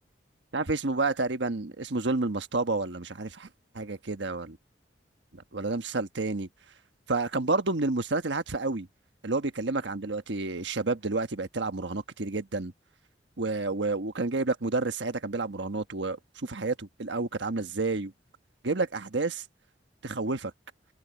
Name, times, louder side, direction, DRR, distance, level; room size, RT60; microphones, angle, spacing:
voice 1, 0.5-3.5 3.7-4.6 5.3-6.5 7.1-8.9 9.2-12.7 13.4-18.1 18.6-19.4 20.0-20.5, right 3 dB, 80° right, 1.3 m, -30 dB
head